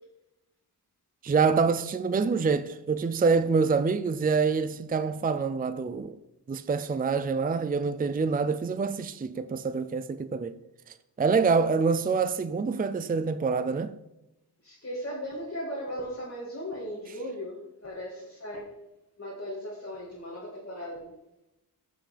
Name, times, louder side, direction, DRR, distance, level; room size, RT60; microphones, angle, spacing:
voice 1, 1.2-6.2 6.5-10.6 10.9-13.9, right 5 dB, 20° right, 0.4 m, -26 dB
voice 2, 14.6-18.8 19.2-21.1, equal, 35° left, 2.4 m, -37 dB
15.0 x 5.8 x 5.1 m
wide cardioid pair, 135°, 41 cm